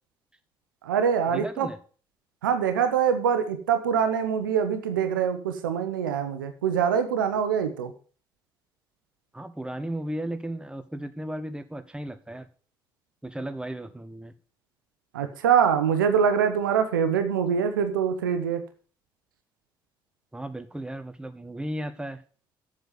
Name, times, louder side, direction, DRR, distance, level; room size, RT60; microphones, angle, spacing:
voice 1, 0.8-1.7 2.4-7.9 15.1-18.6, right 7 dB, 90° right, 8 dB, 0.9 m, -24 dB
voice 2, 1.3-1.8 9.3-12.5 13.2-14.3 20.3-22.2, right 1 dB, 10° right, 9 dB, 1.5 m, -35 dB
7.8 x 7.3 x 7.0 m, 0.40 s
hypercardioid pair, 45°, 11 cm